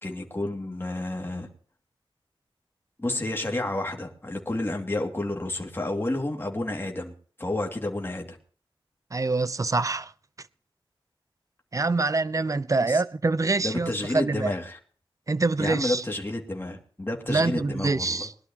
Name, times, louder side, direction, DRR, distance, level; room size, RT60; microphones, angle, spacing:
voice 1, 0.0-1.5 3.0-7.1 7.4-8.4 12.9-13.0 13.6-14.8 15.6-18.3, left 2 dB, 25° left, 2.6 m, -30 dB
voice 2, 9.1-10.1 11.7-14.5 15.3-16.0 17.3-18.3, right 3 dB, 35° right, 0.7 m, -25 dB
21.5 x 12.0 x 3.0 m
wide cardioid pair, 95°, 9 cm